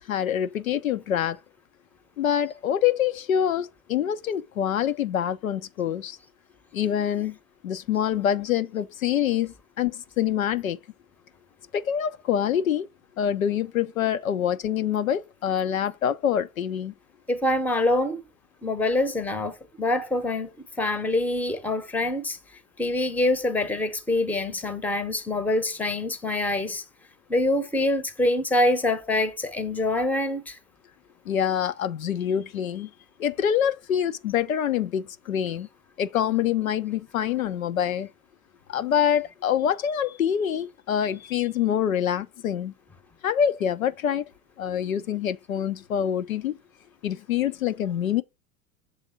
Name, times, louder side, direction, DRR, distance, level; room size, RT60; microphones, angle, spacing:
voice 1, 0.0-1.4 2.2-6.2 6.7-7.4 7.6-10.8 11.7-12.9 13.2-16.9 31.3-32.9 33.2-35.7 36.0-38.1 38.7-42.7 43.2-44.3 44.6-46.6 47.0-48.2, left 9 dB, 75° left, 0.6 m, -25 dB
voice 2, 17.3-18.2 18.6-20.5 20.8-22.4 22.8-26.8 27.3-30.6, left 1 dB, 5° left, 0.8 m, -25 dB
6.9 x 3.5 x 5.0 m
figure-of-eight pair, 85°, 41 cm